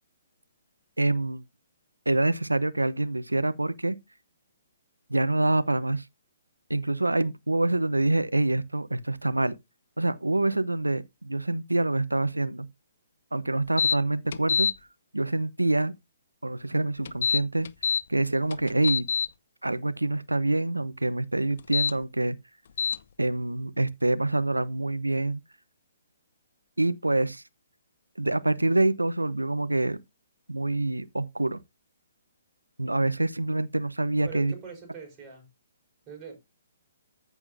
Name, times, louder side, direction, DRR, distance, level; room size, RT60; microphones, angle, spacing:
voice 1, 1.0-1.4 2.1-4.0 5.1-6.0 6.7-9.6 10.0-12.7 13.3-14.7 15.1-15.9 16.4-17.7 18.1-19.1 19.6-22.4 23.2-25.4 26.8-27.4 28.2-30.0 30.5-31.6 32.8-34.5, right 2 dB, 90° right, 0.9 m, -26 dB
sound 1, 13.8-14.0 14.3-14.7 17.0-18.0 18.5-19.3 21.6-21.9 22.8-23.0, left 7 dB, 55° left, 0.7 m, -25 dB
voice 2, 34.2-35.5 36.1-36.4, right 6 dB, 25° right, 5.5 m, -43 dB
14.5 x 6.1 x 2.7 m
figure-of-eight pair, 130°, 0 cm